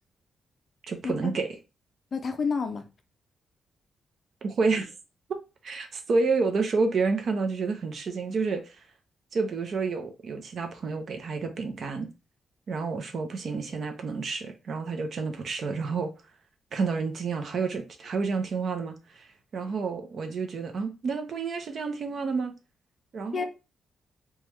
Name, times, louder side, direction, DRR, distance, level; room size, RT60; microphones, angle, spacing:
voice 1, 0.9-1.5 4.4-4.9 5.6-8.8 9.3-12.1 12.7-16.1 16.7-22.5 23.1-23.5, right 4 dB, 50° right, 0.5 m, -29 dB
voice 2, 2.1-2.8 23.3-23.4, left 5 dB, 40° left, 0.4 m, -29 dB
3.3 x 2.2 x 3.0 m
wide cardioid pair, 155°, 0 cm